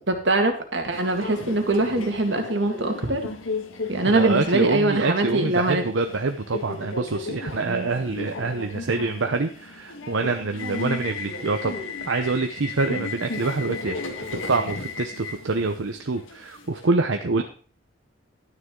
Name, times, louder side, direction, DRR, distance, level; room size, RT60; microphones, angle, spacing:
voice 1, 0.1-3.2 3.9-5.8 7.7-7.9 13.0-13.1, right 2 dB, 65° right, 4 dB, 2.0 m, -23 dB
Subway metro underground, 0.9-16.9, left 3 dB, 90° left, 1.7 m, -35 dB
voice 2, 4.0-17.4, right 3 dB, 80° right, 6 dB, 0.8 m, -26 dB
12.0 x 9.7 x 3.8 m, 0.41 s
head